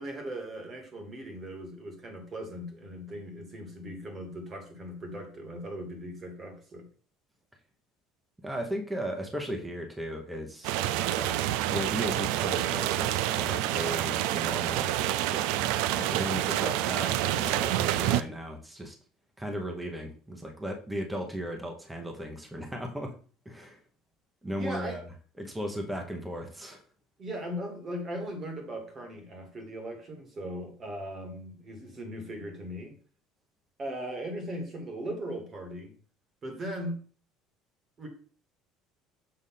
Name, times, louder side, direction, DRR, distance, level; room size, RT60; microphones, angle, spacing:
voice 1, 0.0-6.9 24.5-25.0 27.2-32.9 33.8-35.9 36.4-37.0 38.0-38.1, equal, 25° right, 3 dB, 1.5 m, -38 dB
voice 2, 8.4-10.8 11.1-15.0 15.3-15.5 15.9-19.0 19.4-23.1 23.5-23.8 24.4-25.1 25.4-26.8, equal, 5° right, 2 dB, 0.9 m, -36 dB
sound 1, 10.6-18.2, right 13 dB, 75° right, 0.3 m, -28 dB
6.7 x 2.6 x 5.6 m, 0.42 s
cardioid pair, 160°, 0 cm